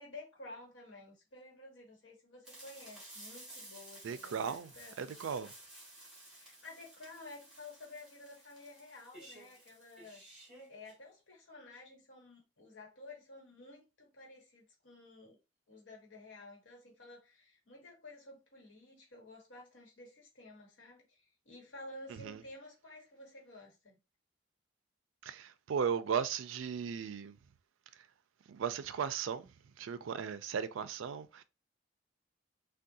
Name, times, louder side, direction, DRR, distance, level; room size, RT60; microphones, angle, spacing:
voice 1, 0.0-5.2 6.3-10.2 10.7-15.4 15.7-24.0, left 2 dB, 70° left, 1.2 m, -52 dB
sound 1, 2.4-10.9, right 1 dB, 5° right, 1.2 m, -54 dB
voice 2, 4.0-4.7 5.0-5.5 22.2-22.4 25.2-27.3 28.5-29.5 29.8-31.4, right 7 dB, 80° right, 0.4 m, -36 dB
3.6 x 2.2 x 2.7 m
head